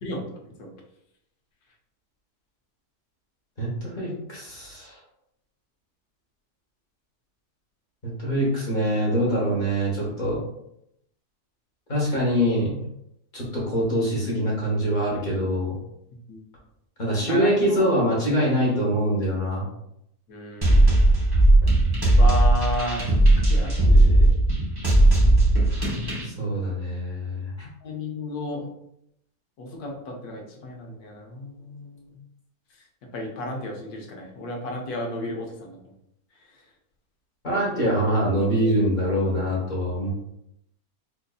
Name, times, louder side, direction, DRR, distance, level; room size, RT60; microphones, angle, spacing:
voice 1, 0.0-0.7 16.3-16.4 17.3-17.8 20.3-20.9 22.2-24.3 27.8-28.7 29.6-32.2 33.1-35.9, left 1 dB, 75° left, 1 dB, 1.3 m, -33 dB
voice 2, 3.6-4.9 8.0-10.4 11.9-12.8 13.3-15.8 17.0-19.7 26.2-27.7 37.4-40.1, equal, 35° left, -4 dB, 1.0 m, -24 dB
sound 1, 20.6-26.3, right 1 dB, 25° right, 0.5 m, -17 dB
4.3 x 2.6 x 2.3 m, 0.78 s
omnidirectional pair, 1.7 m